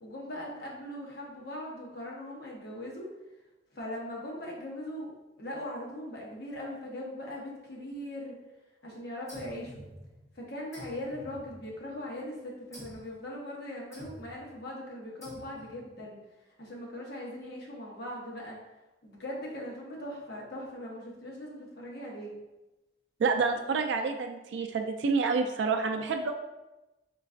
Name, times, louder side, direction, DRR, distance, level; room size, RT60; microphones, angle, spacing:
voice 1, 0.0-3.1 3.7-5.1 5.4-8.4 8.8-9.9 10.3-16.2 16.6-18.6 19.0-22.4, left 1 dB, 60° left, -3 dB, 0.9 m, -40 dB
sound 1, 9.3-10.3 10.7-12.0 12.7-13.1 13.9-14.5 15.2-15.8, equal, 15° left, 1.2 m, -49 dB
voice 2, 23.2-26.3, right 4 dB, 70° right, 4 dB, 0.3 m, -28 dB
3.8 x 3.2 x 2.5 m, 1.0 s
head